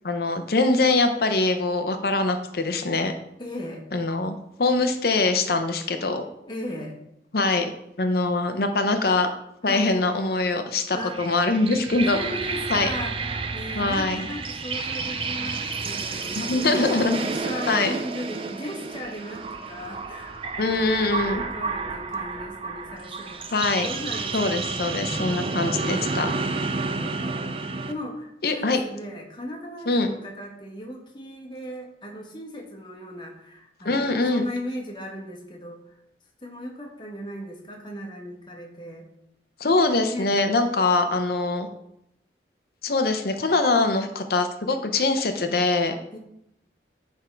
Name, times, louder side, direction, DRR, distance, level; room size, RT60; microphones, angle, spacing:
voice 1, 0.0-3.1 3.9-6.2 7.3-7.7 8.0-9.3 9.6-12.2 12.7-12.9 13.7-14.3 16.3-17.2 17.7-17.9 20.6-21.4 23.5-23.9 24.3-26.3 28.4-28.8 29.9-30.1 33.8-34.4 39.6-41.7 42.8-46.0, left 3 dB, 55° left, 7 dB, 0.6 m, -23 dB
voice 2, 3.4-3.8 6.4-7.0 9.6-10.0 10.9-11.2 12.1-13.2 13.5-16.6 17.1-25.1 25.4-26.3 26.8-36.0 36.4-39.1 40.1-40.4 46.1-46.2, left 1 dB, 25° left, 1 dB, 1.2 m, -37 dB
sound 1, 11.0-27.9, right 4 dB, 30° right, 0.4 m, -31 dB
9.8 x 3.6 x 4.5 m, 0.79 s
head